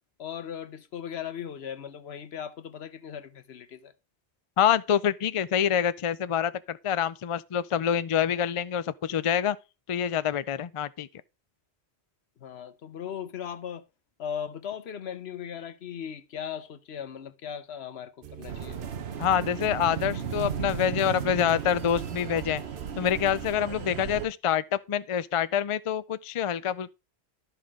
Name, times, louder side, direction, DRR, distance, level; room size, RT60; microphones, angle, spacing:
voice 1, 0.2-3.9 12.4-13.8 14.2-18.8, left 8 dB, 75° left, 1.1 m, -38 dB
voice 2, 4.6-9.6 9.9-11.1 19.2-22.6 23.0-26.9, left 9 dB, 50° left, 0.4 m, -26 dB
sound 1, 18.2-23.6, right 10 dB, 60° right, 0.7 m, -43 dB
sound 2, 18.5-24.3, right 7 dB, 75° right, 1.3 m, -35 dB
12.5 x 5.7 x 3.7 m
omnidirectional pair, 1.1 m